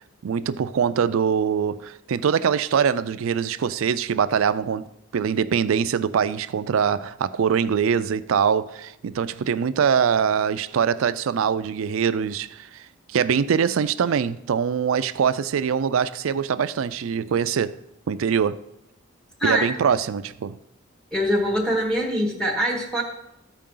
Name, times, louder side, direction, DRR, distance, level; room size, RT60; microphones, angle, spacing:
voice 1, 0.2-4.8 5.1-12.8 13.1-17.8 18.1-18.6 19.4-20.6, right 7 dB, 80° right, 0.4 m, -23 dB
voice 2, 21.1-23.0, equal, 5° left, 1.3 m, -23 dB
14.0 x 4.7 x 3.8 m
head